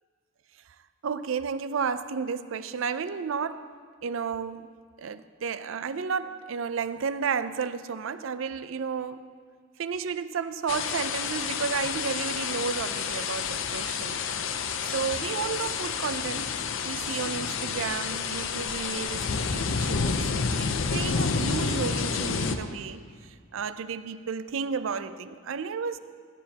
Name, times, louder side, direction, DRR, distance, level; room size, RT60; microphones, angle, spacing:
voice 1, 1.0-3.7 4.0-4.7 5.0-9.2 9.8-14.6 14.9-20.3 20.6-26.0, right 6 dB, 70° right, 13 dB, 0.4 m, -32 dB
sound 1, 10.7-22.6, left 5 dB, 70° left, 0.6 m, -29 dB
14.5 x 14.0 x 2.8 m, 2.1 s
head